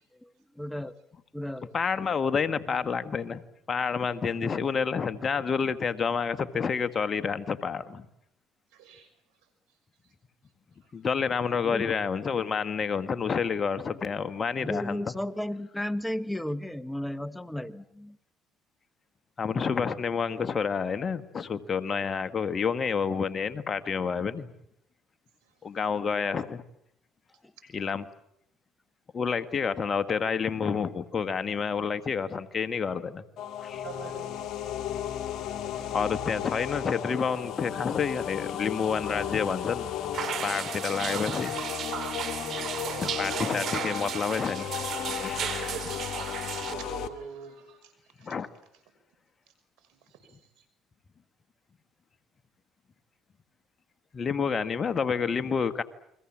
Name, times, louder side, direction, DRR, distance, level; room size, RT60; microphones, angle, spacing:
voice 1, 0.2-1.0 1.3-1.7 11.6-11.9 14.6-18.2, left 1 dB, 5° left, 14 dB, 1.2 m, -34 dB
voice 2, 1.7-3.4 3.7-8.1 10.9-15.0 19.4-24.5 25.6-26.6 27.7-28.1 29.1-33.2 33.6-33.8 35.9-39.9 40.4-41.5 43.0-44.7 45.0-45.7 48.2-48.5 54.1-55.8, left 6 dB, 40° left, 11 dB, 1.7 m, -29 dB
voice 3, 8.7-9.1 33.8-34.3 35.6-36.0 45.4-45.9 46.5-47.9, right 7 dB, 80° right, 9 dB, 6.3 m, -42 dB
sound 1, 33.4-47.1, left 10 dB, 65° left, 2.1 m, -35 dB
sound 2, 40.1-46.7, right 9 dB, 60° right, 2.5 m, -35 dB
30.0 x 23.0 x 7.6 m, 0.76 s
supercardioid pair, 70°, 0 cm